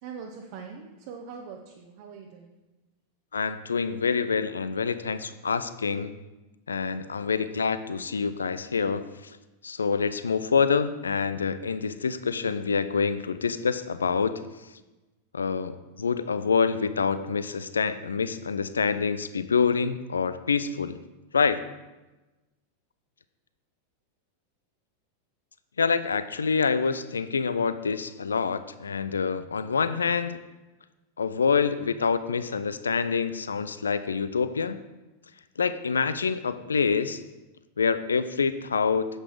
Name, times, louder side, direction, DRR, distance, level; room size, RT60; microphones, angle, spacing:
voice 1, 0.0-2.6, right 6 dB, 50° right, 2 dB, 1.0 m, -42 dB
voice 2, 3.3-6.1 6.7-9.3 9.6-14.4 15.3-21.0 21.3-21.6 25.8-30.4 31.2-34.8 35.6-37.2 37.8-39.1, left 5 dB, 70° left, 13 dB, 0.5 m, -26 dB
9.7 x 8.0 x 4.8 m, 1.1 s
figure-of-eight pair, 90°, 0 cm